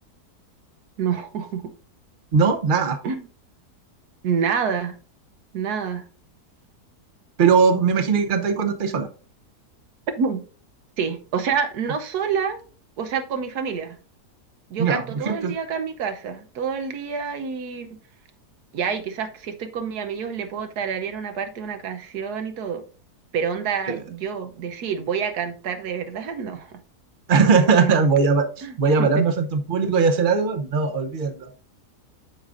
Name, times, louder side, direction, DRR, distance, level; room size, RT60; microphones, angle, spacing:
voice 1, 1.0-1.7 3.0-3.2 4.2-5.0 5.5-6.0 7.6-7.9 10.2-10.4 11.0-12.6 13.0-14.0 14.7-17.9 18.7-22.8 23.3-26.8 27.6-28.0 28.6-29.2, right 6 dB, 75° right, 8 dB, 1.4 m, -28 dB
voice 2, 2.3-3.0 7.4-9.1 14.8-15.6 23.9-24.0 27.3-31.5, right 5 dB, 40° right, 7 dB, 0.9 m, -20 dB
13.0 x 4.9 x 2.6 m, 0.38 s
omnidirectional pair, 1.7 m